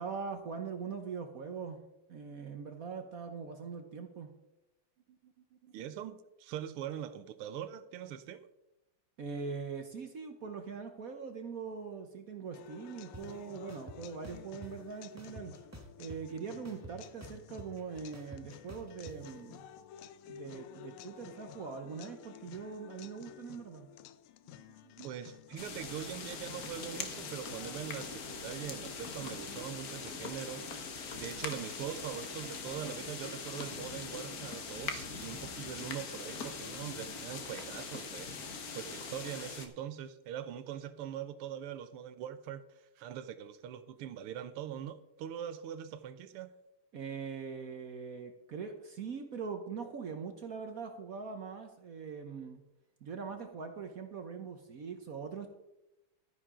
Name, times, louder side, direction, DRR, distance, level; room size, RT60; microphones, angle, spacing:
voice 1, 0.0-1.8 2.1-4.3 9.2-15.5 16.0-19.7 20.3-23.9 46.9-52.6 53.0-55.5, right 5 dB, 55° right, 6 dB, 1.0 m, -42 dB
voice 2, 5.1-8.4 20.3-20.9 24.4-30.7 31.1-38.3 38.7-42.6 43.0-46.5 53.3-53.5, right 10 dB, 80° right, 13 dB, 1.7 m, -42 dB
sound 1, 12.5-28.5, left 10 dB, 75° left, 1.5 m, -53 dB
sound 2, 13.1-13.2 13.7-14.7 15.2-16.3 16.6-19.2, right 1 dB, 15° right, 0.6 m, -49 dB
sound 3, 25.6-39.7, left 4 dB, 50° left, 1.4 m, -42 dB
13.0 x 10.0 x 3.7 m, 0.91 s
omnidirectional pair, 2.4 m